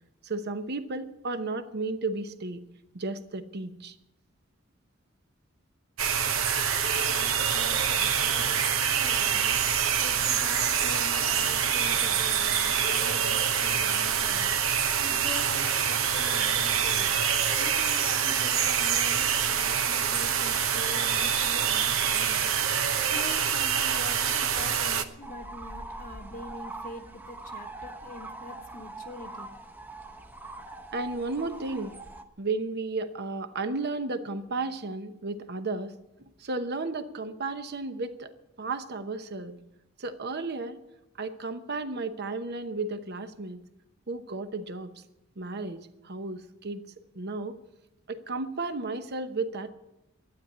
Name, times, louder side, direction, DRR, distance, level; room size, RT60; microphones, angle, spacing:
voice 1, 0.2-2.6 2.9-4.0 30.9-31.9 32.4-35.9 36.4-38.3 38.6-39.6 40.0-40.8 41.2-43.6 44.1-44.9 45.4-46.8 47.1-47.6 48.1-49.7, right 3 dB, 55° right, 10 dB, 0.9 m, -33 dB
sound 1, 6.0-25.0, right 8 dB, 85° right, 0.9 m, -26 dB
voice 2, 7.1-9.6 10.0-14.5 15.0-17.1 17.5-29.5, left 2 dB, 45° left, 6 dB, 0.9 m, -44 dB
sound 2, 25.2-32.2, right 2 dB, 10° right, 0.9 m, -42 dB
12.0 x 9.5 x 8.5 m, 0.92 s
head